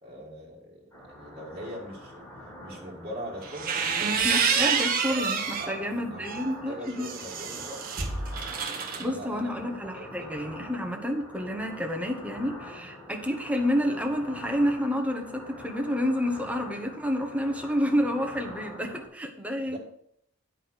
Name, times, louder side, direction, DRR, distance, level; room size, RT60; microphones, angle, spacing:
voice 1, 0.0-2.3 2.6-4.4 5.6-7.9 8.9-10.3 19.7-19.8, equal, 25° right, -7 dB, 2.0 m, -42 dB
sound 1, 0.9-19.1, equal, 15° left, 4.0 m, -45 dB
sound 2, 3.4-5.8 6.2-9.0, right 6 dB, 45° right, 1.1 m, -28 dB
voice 2, 4.0-7.1 8.8-19.8, equal, 5° right, 3 dB, 1.1 m, -29 dB
9.9 x 5.2 x 6.4 m, 0.70 s
head